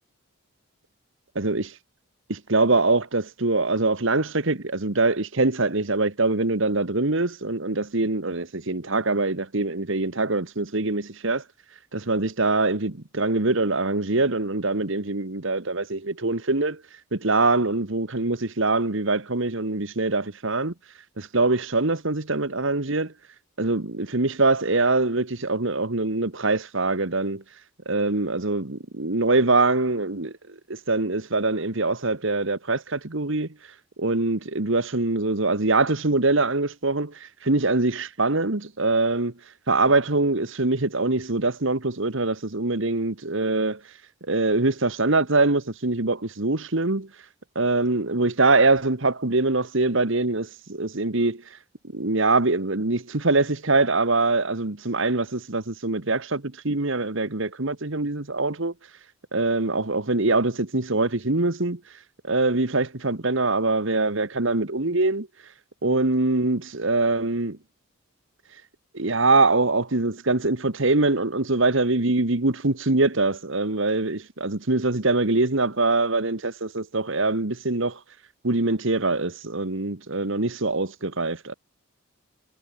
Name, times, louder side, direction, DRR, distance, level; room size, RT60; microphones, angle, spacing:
voice 1, 2.3-11.4 11.9-16.8 17.1-20.7 21.2-23.1 23.6-27.4 27.8-33.5 34.0-39.3 39.7-43.8 44.3-47.1 47.5-51.4 51.9-58.7 59.3-61.8 62.2-65.3 65.8-67.6 68.9-78.0 78.4-81.5, right 3 dB, 55° right, 1.5 m, -23 dB
head